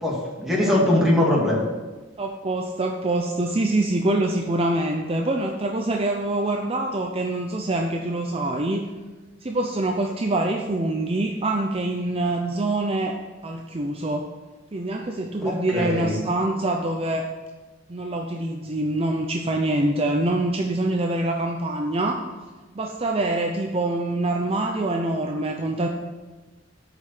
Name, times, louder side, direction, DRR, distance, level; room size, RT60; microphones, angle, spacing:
voice 1, 0.0-1.6 15.4-16.2, left 1 dB, ahead, -4 dB, 2.2 m, -21 dB
voice 2, 0.6-1.1 2.2-8.8 9.4-13.2 13.4-14.2 14.7-17.3 17.9-22.2 22.7-25.9, right 2 dB, 30° right, 2 dB, 0.6 m, -25 dB
8.2 x 5.5 x 7.6 m, 1.2 s
head